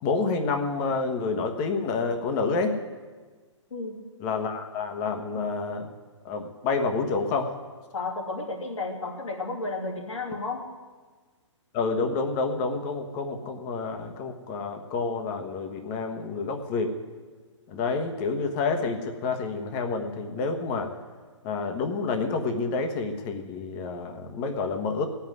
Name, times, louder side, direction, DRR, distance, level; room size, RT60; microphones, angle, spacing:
voice 1, 0.0-2.8 4.2-5.9 6.2-7.5 11.7-16.9 17.7-20.9 21.4-25.1, left 4 dB, 30° left, 5 dB, 1.4 m, -28 dB
voice 2, 7.9-10.6, left 3 dB, 75° left, -1 dB, 2.9 m, -32 dB
17.0 x 5.8 x 9.4 m, 1.4 s
hypercardioid pair, 130°, 16 cm